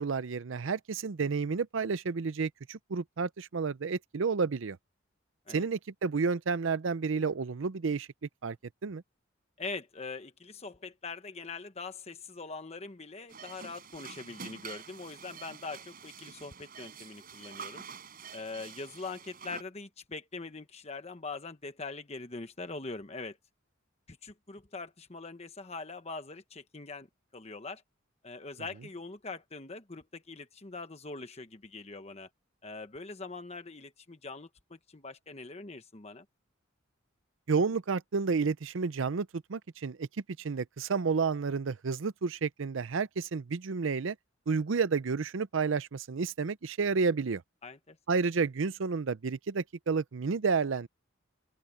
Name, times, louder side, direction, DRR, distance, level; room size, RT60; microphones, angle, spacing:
voice 1, 0.0-4.8 5.5-8.1 8.4-8.6 8.8-9.0 37.5-40.1 40.4-44.2 44.5-47.4 48.1-50.9, right 5 dB, 70° right, 0.5 m, -30 dB
voice 2, 9.6-17.8 18.3-23.4 24.1-27.1 27.3-27.8 28.2-32.3 32.6-36.2 47.6-48.0, left 3 dB, 30° left, 1.1 m, -42 dB
sound 1, 13.3-19.6, right 6 dB, 45° right, 7.6 m, -47 dB
open air
head